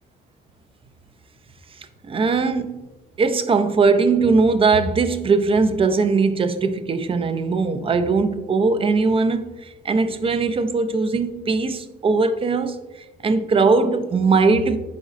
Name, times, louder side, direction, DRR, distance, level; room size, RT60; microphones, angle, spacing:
voice 1, 2.0-2.8 3.2-12.8 13.2-14.8, right 4 dB, 30° right, 0.3 m, -20 dB
4.1 x 3.9 x 2.5 m
cardioid pair, 90°, 20 cm